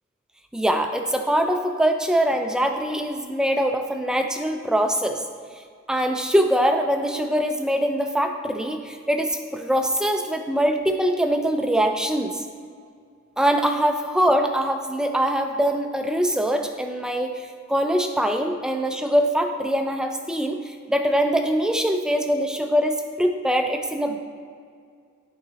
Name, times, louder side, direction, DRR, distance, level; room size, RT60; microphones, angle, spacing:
voice 1, 0.5-5.2 5.9-12.4 13.4-24.2, equal, 5° right, 5 dB, 0.3 m, -23 dB
11.0 x 3.8 x 2.8 m, 2.1 s
head